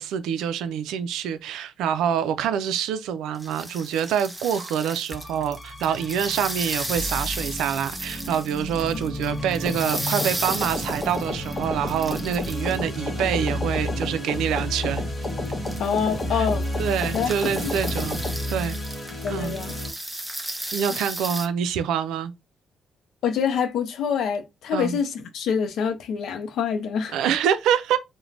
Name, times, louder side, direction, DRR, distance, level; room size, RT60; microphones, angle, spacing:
voice 1, 0.0-15.0 16.3-16.5 16.8-18.2 18.5-18.8 19.3-19.6 20.7-22.3 24.7-25.0 27.1-28.0, right 8 dB, 85° right, 0.3 m, -26 dB
sound 1, 3.3-13.0 14.5-14.6 15.2-21.5, right 1 dB, 10° right, 0.6 m, -34 dB
sound 2, 5.1-19.9, left 1 dB, 20° left, 1.3 m, -32 dB
sound 3, 9.7-18.4, left 2 dB, 40° left, 1.0 m, -32 dB
voice 2, 15.8-16.7 17.1-17.7 19.2-19.7 23.2-27.2, left 7 dB, 75° left, 0.5 m, -26 dB
2.5 x 2.1 x 3.1 m
cardioid pair, 90°, 0 cm